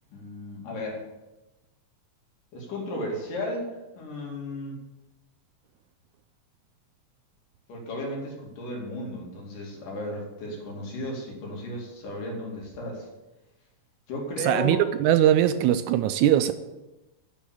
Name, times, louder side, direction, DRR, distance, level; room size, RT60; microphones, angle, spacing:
voice 1, 0.1-1.0 2.5-3.7 4.0-4.8 7.7-13.1 14.1-14.9, left 1 dB, 85° left, -1 dB, 4.3 m, -34 dB
voice 2, 14.4-16.5, right 11 dB, 80° right, 11 dB, 1.8 m, -21 dB
10.5 x 6.3 x 8.3 m, 1.1 s
omnidirectional pair, 3.7 m